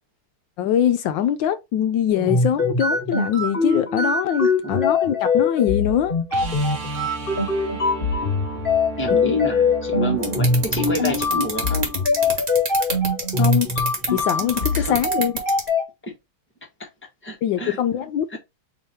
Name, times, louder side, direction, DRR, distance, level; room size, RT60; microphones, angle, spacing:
voice 1, 0.6-6.1 9.2-9.4 13.4-13.7 14.1-15.3 17.4-18.4, left 10 dB, 75° left, 1.1 m, -22 dB
sound 1, 2.1-15.8, left 3 dB, 30° left, 1.3 m, -22 dB
voice 2, 4.6-4.9 9.0-11.9 14.7-15.0 16.0-16.2 16.8-16.9 17.2-17.8 18.3-18.4, left 1 dB, 10° left, 0.5 m, -28 dB
sound 2, 6.3-12.3 14.8-14.9, right 3 dB, 80° right, 0.6 m, -35 dB
sound 3, 10.2-15.7, right 3 dB, 40° right, 1.5 m, -25 dB
3.6 x 3.2 x 4.0 m
omnidirectional pair, 2.4 m